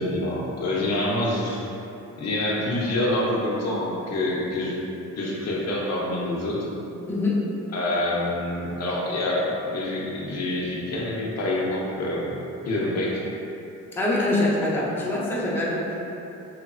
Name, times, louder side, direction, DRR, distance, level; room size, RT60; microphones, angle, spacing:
voice 1, 0.0-1.6 2.2-4.7 5.2-6.6 7.7-12.4 12.7-13.2, left 1 dB, 60° left, -4 dB, 0.6 m, -26 dB
voice 2, 7.1-7.4 13.9-15.9, left 2 dB, 5° left, -6 dB, 0.4 m, -24 dB
3.0 x 2.3 x 2.4 m, 2.8 s
cardioid pair, 90°, 30 cm